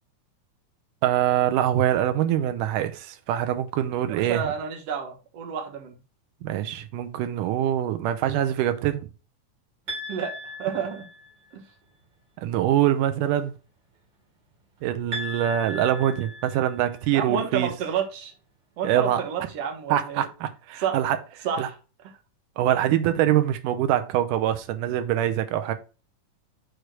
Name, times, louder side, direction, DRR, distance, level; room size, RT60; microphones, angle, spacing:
voice 1, 1.0-4.5 6.4-9.0 12.4-13.5 14.8-17.7 18.8-19.2 19.9-21.2 21.6-21.7 22.6-25.7, right 11 dB, 85° right, 2.3 m, -24 dB
voice 2, 4.1-6.0 10.1-11.1 11.5-11.6 17.1-18.3 18.8-20.3 20.8-21.0 21.4-21.7, right 7 dB, 60° right, 2.1 m, -30 dB
sound 1, 9.9-11.5 15.1-17.1, left 1 dB, 40° right, 2.3 m, -37 dB
6.5 x 3.3 x 6.0 m
omnidirectional pair, 3.7 m